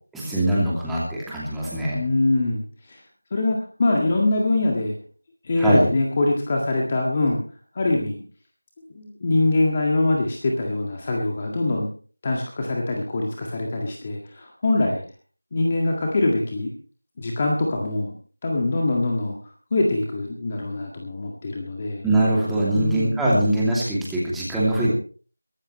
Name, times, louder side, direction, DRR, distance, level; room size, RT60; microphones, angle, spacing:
voice 1, 0.1-2.0 5.6-5.8 22.0-24.9, right 1 dB, ahead, -7 dB, 2.6 m, -22 dB
voice 2, 1.9-3.0 3.3-4.9 5.4-7.4 7.7-8.2 8.8-11.9 12.2-15.0 15.5-16.7 17.2-18.1 18.4-19.4 19.7-22.0 22.7-23.1, left 2 dB, 20° left, 1 dB, 1.8 m, -23 dB
22.5 x 13.0 x 3.2 m, 0.40 s
figure-of-eight pair, 175°, 0 cm